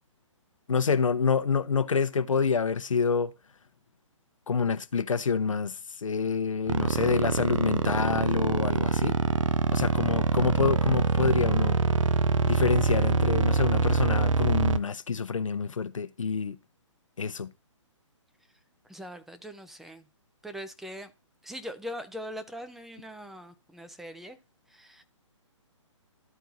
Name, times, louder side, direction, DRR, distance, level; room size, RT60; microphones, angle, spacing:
voice 1, 0.7-3.3 4.5-5.7 6.0-9.2 9.7-11.8 12.4-16.6 17.2-17.5, left 5 dB, 85° left, 0.8 m, -27 dB
sound 1, 6.7-14.8, right 5 dB, 75° right, 0.6 m, -25 dB
voice 2, 18.9-20.1 20.4-21.1 21.4-24.4 24.7-25.0, equal, ahead, 0.5 m, -41 dB
13.5 x 4.5 x 2.6 m
hypercardioid pair, 140°, 16 cm